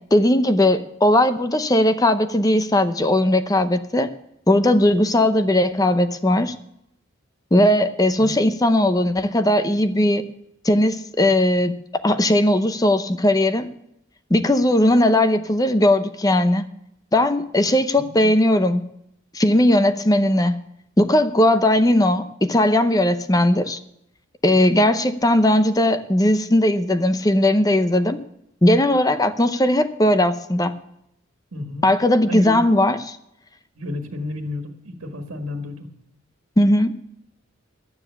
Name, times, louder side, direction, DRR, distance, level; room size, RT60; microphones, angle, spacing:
voice 1, 0.1-4.1 4.5-6.5 7.5-10.2 10.6-11.7 12.0-13.7 14.3-16.6 17.1-18.9 19.3-20.6 21.0-23.8 24.4-28.2 28.6-30.7 31.8-33.2 36.6-36.9, left 1 dB, 20° left, 0.7 m, -18 dB
voice 2, 18.0-18.3 31.5-31.8 32.2-32.6 33.8-35.9, left 1 dB, 90° right, 1.6 m, -31 dB
12.0 x 9.7 x 7.0 m
head